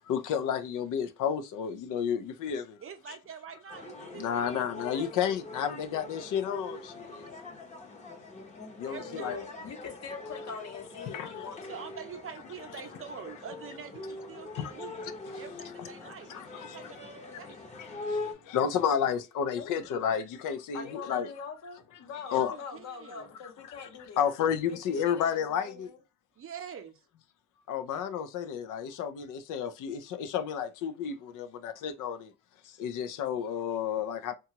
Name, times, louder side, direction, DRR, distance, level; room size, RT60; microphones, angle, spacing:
voice 1, 0.1-2.8 4.1-7.3 8.8-9.4 11.1-11.3 14.5-14.7 15.8-16.8 17.8-21.3 22.3-22.6 23.7-23.8 24.2-25.9 27.7-32.3 32.6-34.4, left 8 dB, 90° left, 0.5 m, -31 dB
voice 2, 2.8-5.1 8.9-9.3 11.7-15.0 15.3-17.7 22.3-23.3 26.4-27.0, right 7 dB, 45° right, 0.6 m, -45 dB
sound 1, 3.7-18.3, left 2 dB, 25° left, 0.7 m, -43 dB
voice 3, 8.9-11.8 19.6-19.9 20.7-24.2 24.7-26.0, left 5 dB, 60° left, 0.9 m, -43 dB
2.8 x 2.3 x 2.8 m
cardioid pair, 105°, 30 cm